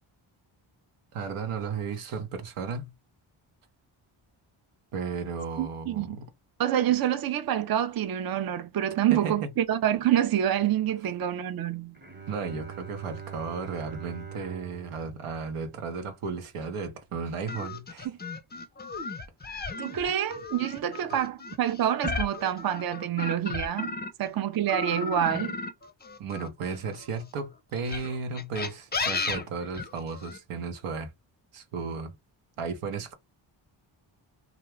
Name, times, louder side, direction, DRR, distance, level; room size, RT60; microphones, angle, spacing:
voice 1, 1.1-2.9 4.9-6.3 9.1-9.4 12.3-18.2 26.2-31.1 31.5-32.1 32.6-33.1, right 5 dB, 85° right, 0.8 m, -34 dB
voice 2, 5.6-6.2 6.6-11.9 19.8-23.9 24.2-25.6, right 11 dB, 45° right, 0.5 m, -27 dB
Bowed string instrument, 11.9-16.5, right 7 dB, 20° right, 0.9 m, -44 dB
sound 1, 17.5-24.3 24.7-27.1 27.8-30.4, left 4 dB, 20° left, 0.5 m, -34 dB
2.4 x 2.2 x 3.0 m
cardioid pair, 55°, 50 cm